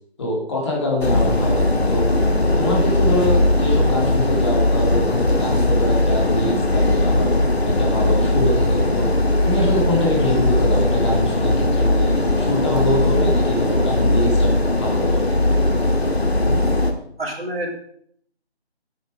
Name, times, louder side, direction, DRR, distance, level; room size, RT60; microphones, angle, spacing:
voice 1, 0.2-2.2 2.6-7.3 7.6-9.1 9.4-15.3 16.5-16.6, left 1 dB, 25° left, -3 dB, 3.1 m, -24 dB
sound 1, 1.0-16.9, left 1 dB, 70° left, 1.8 m, -19 dB
voice 2, 17.2-17.7, right 1 dB, 65° right, -1 dB, 3.6 m, -27 dB
9.3 x 9.3 x 5.1 m, 0.65 s
figure-of-eight pair, 160°, 32 cm